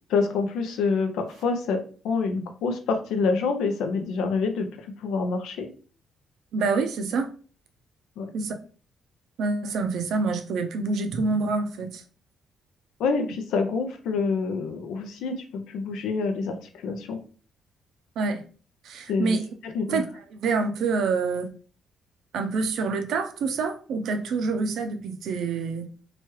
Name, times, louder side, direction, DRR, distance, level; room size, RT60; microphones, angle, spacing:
voice 1, 0.1-1.8 2.0-4.7 5.0-5.7 8.2-8.3 13.0-17.2 19.1-19.4 19.6-20.0, left 4 dB, 85° left, 6 dB, 0.5 m, -27 dB
voice 2, 6.5-7.3 8.3-8.5 9.4-12.0 18.2-18.4 18.8-19.5 19.9-20.1 20.3-21.5 22.3-25.9, right 4 dB, 75° right, 7 dB, 0.5 m, -26 dB
3.0 x 2.3 x 3.0 m, 0.39 s
cardioid pair, 90°, 0 cm